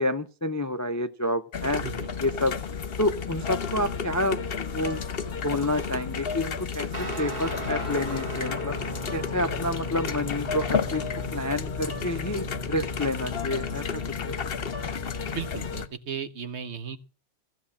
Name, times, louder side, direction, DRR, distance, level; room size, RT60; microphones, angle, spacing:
voice 1, 0.0-1.8 2.2-2.6 3.0-5.0 5.4-8.8 9.1-11.0 11.3-14.3, left 1 dB, 20° left, 11 dB, 0.5 m, -29 dB
sound 1, 1.5-15.9, left 6 dB, 50° left, 1.1 m, -32 dB
sound 2, 3.8-9.0, right 5 dB, 85° right, 4.4 m, -50 dB
Guitar, 6.9-15.9, right 1 dB, 35° right, 2.3 m, -38 dB
voice 2, 15.3-17.0, right 7 dB, 60° right, 11 dB, 1.2 m, -35 dB
15.5 x 7.3 x 7.2 m, 0.35 s
omnidirectional pair, 1.3 m